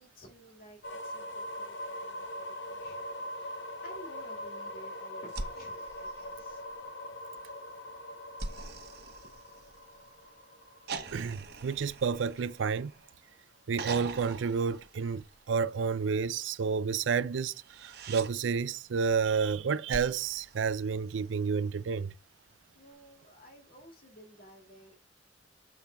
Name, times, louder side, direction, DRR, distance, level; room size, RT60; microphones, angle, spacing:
voice 1, 0.0-6.6 22.7-25.0, right 1 dB, 50° left, 2.2 m, -54 dB
sound 1, 0.8-12.6, left 1 dB, 80° left, 0.7 m, -42 dB
sound 2, 5.3-6.9 8.4-10.1 10.9-13.2 13.7-15.6 17.5-18.3 19.9-21.4 22.9-23.0, right 3 dB, 55° right, 1.0 m, -43 dB
voice 2, 11.1-12.9 13.7-22.1, right 5 dB, 90° right, 0.4 m, -30 dB
7.3 x 5.8 x 3.4 m
head